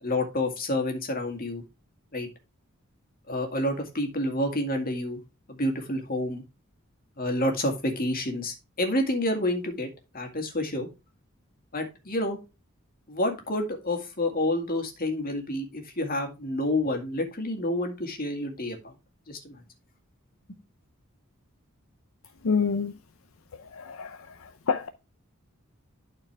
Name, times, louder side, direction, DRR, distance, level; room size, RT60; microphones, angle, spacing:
voice 1, 0.0-1.6 2.1-2.3 3.3-5.2 5.5-6.4 7.2-9.9 10.1-10.9 11.7-12.4 13.1-18.9 19.3-19.6, left 1 dB, 45° left, 2.0 m, -29 dB
voice 2, 22.4-23.0 23.5-24.9, left 5 dB, 75° left, 0.6 m, -28 dB
11.5 x 4.5 x 3.3 m
head